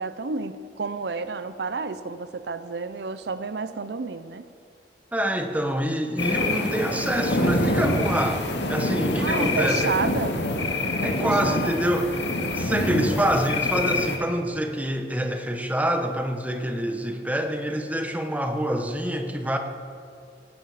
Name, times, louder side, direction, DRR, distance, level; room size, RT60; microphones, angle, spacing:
voice 1, 0.0-4.4 9.2-10.3 11.2-11.9, right 4 dB, 65° right, 12 dB, 0.6 m, -30 dB
voice 2, 5.1-8.4 8.7-9.9 11.0-12.1 12.4-19.6, equal, 10° right, 5 dB, 1.1 m, -26 dB
sound 1, 6.2-14.2, left 1 dB, 85° left, 1.9 m, -26 dB
18.0 x 15.5 x 4.9 m, 2.5 s
head